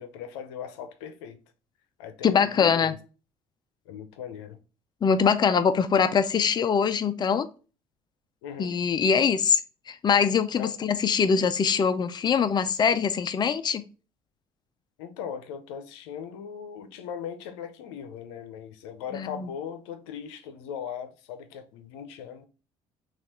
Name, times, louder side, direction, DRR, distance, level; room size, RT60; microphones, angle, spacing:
voice 1, 0.0-1.4 2.0-3.0 3.9-4.6 8.4-8.8 10.5-10.8 15.0-22.4, left 8 dB, 85° left, 0.6 m, -39 dB
voice 2, 2.2-2.9 5.0-7.5 8.6-9.6 9.9-13.9 19.1-19.5, left 6 dB, 30° left, 0.5 m, -23 dB
5.9 x 2.4 x 2.9 m
supercardioid pair, 75°, 14 cm